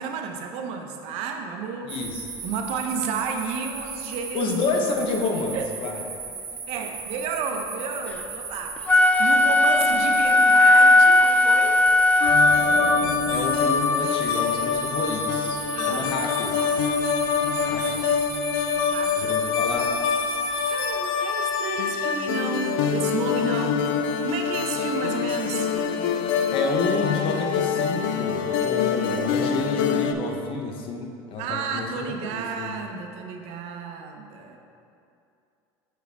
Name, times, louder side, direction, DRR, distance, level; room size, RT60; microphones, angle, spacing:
voice 1, 0.0-2.0 2.4-4.5 5.5-5.7 6.7-11.8 15.7-16.1 18.8-19.3 20.5-23.9 24.2-25.7 31.4-34.6, right 5 dB, 65° right, 4 dB, 0.7 m, -32 dB
voice 2, 1.8-2.3 4.3-6.0 13.3-16.8 17.6-18.0 19.2-19.9 26.5-32.7, left 3 dB, 50° left, 2 dB, 0.8 m, -29 dB
sound 1, 1.9-20.9, right 5 dB, 40° right, 1.2 m, -36 dB
Wind instrument woodwind instrument, 8.8-13.2, left 2 dB, 10° left, 0.3 m, -17 dB
sound 2, 12.2-30.1, left 6 dB, 80° left, 0.4 m, -25 dB
6.1 x 4.8 x 3.4 m, 2.5 s
supercardioid pair, 105°, 11 cm